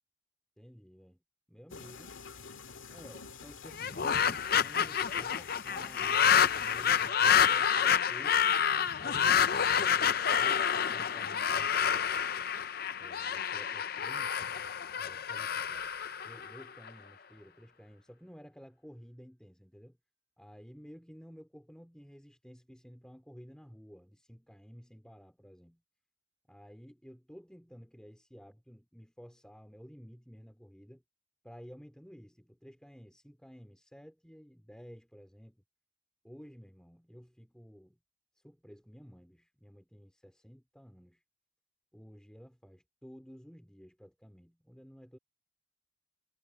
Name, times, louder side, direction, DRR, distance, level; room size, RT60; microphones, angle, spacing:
voice 1, 0.6-1.2 1.5-2.2 2.9-7.2 7.5-8.6 9.0-12.3 13.0-14.4 15.0-15.9 16.2-20.0 20.4-25.8 26.5-31.0 31.4-35.6 36.2-38.0 38.3-41.2 41.9-45.2, equal, 5° left, 3.1 m, -53 dB
sound 1, 1.7-7.1, left 5 dB, 75° left, 2.1 m, -48 dB
sound 2, 3.7-16.9, left 8 dB, 50° left, 0.6 m, -28 dB
Keyboard (musical), 15.7-17.5, right 9 dB, 65° right, 5.4 m, -56 dB
head